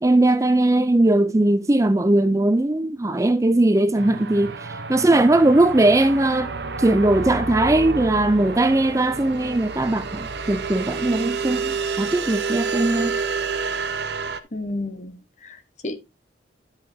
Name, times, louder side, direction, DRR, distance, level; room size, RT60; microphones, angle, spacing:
voice 1, 0.0-6.5 6.8-13.2, right 2 dB, 15° right, 0.4 m, -19 dB
sound 1, 4.0-14.4, right 4 dB, 65° right, 0.9 m, -29 dB
voice 2, 14.5-16.0, left 2 dB, 40° left, 1.1 m, -32 dB
11.0 x 8.0 x 2.7 m
head